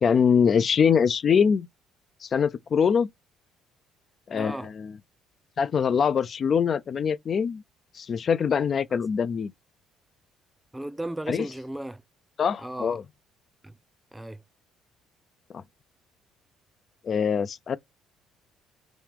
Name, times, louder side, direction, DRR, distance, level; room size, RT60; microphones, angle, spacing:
voice 1, 0.0-1.7 2.2-3.1 4.3-4.9 5.6-7.6 7.9-9.5 11.3-11.5 12.4-13.0 15.5-15.6 17.0-17.8, left 6 dB, 50° left, 0.3 m, -23 dB
voice 2, 4.3-4.7 8.9-9.0 10.7-12.0 12.6-13.0 13.6-13.7 14.1-14.4, right 1 dB, 10° right, 0.5 m, -35 dB
4.7 x 3.0 x 3.5 m
supercardioid pair, 65°, 0 cm